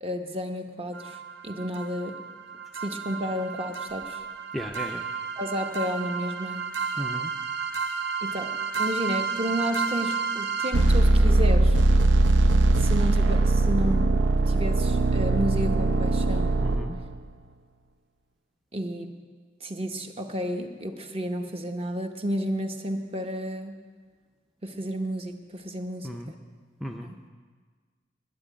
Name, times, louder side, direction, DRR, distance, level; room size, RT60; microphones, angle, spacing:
voice 1, 0.0-2.2 2.8-4.2 5.4-6.7 8.2-11.8 12.8-14.1 14.5-16.6 18.7-19.1 19.6-23.8 24.6-26.3 27.0-27.1, equal, 30° right, 5 dB, 0.9 m, -31 dB
sound 1, 1.0-1.1 1.8-1.9 2.2-2.3 2.8-17.2, right 2 dB, 80° right, 0.6 m, -24 dB
voice 2, 4.5-5.0 7.0-7.3 16.6-17.0 26.0-26.3 26.8-27.1, equal, ahead, 2 dB, 0.4 m, -35 dB
10.5 x 8.2 x 9.9 m, 1.5 s
head